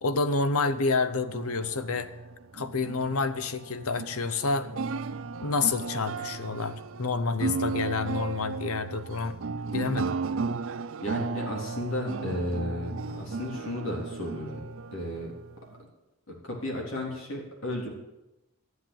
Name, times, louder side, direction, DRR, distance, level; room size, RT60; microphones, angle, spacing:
voice 1, 0.0-2.1 2.5-4.7 5.4-9.4 9.7-10.1, left 4 dB, 80° left, 12 dB, 0.8 m, -28 dB
sound 1, 1.1-15.8, right 4 dB, 60° right, 0.5 m, -35 dB
voice 2, 11.0-14.6 14.9-15.3 16.3-17.9, left 1 dB, 60° left, -1 dB, 3.6 m, -34 dB
12.0 x 8.0 x 9.2 m, 0.97 s
head